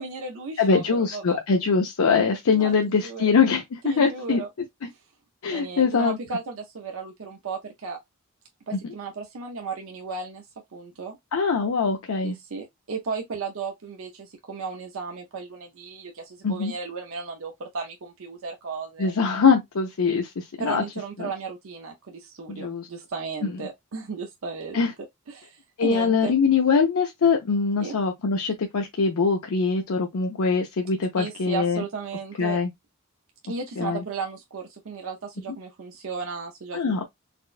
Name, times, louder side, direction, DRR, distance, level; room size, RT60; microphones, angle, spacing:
voice 1, 0.0-1.4 2.6-3.3 3.8-4.5 4.8-5.0 5.5-8.0 8.7-10.5 10.7-11.2 12.2-19.1 20.6-24.8 25.3-26.3 27.8-28.0 31.2-32.6 33.4-37.0, right 4 dB, 65° right, 0.5 m, -35 dB
voice 2, 0.6-4.4 5.4-6.2 11.3-12.4 16.4-16.7 19.0-20.8 21.2-21.3 22.5-22.9 23.4-23.5 24.7-24.9 25.8-31.8 32.4-32.7 33.8-34.0 36.7-37.0, left 5 dB, 80° left, 0.5 m, -23 dB
4.2 x 2.1 x 2.4 m
head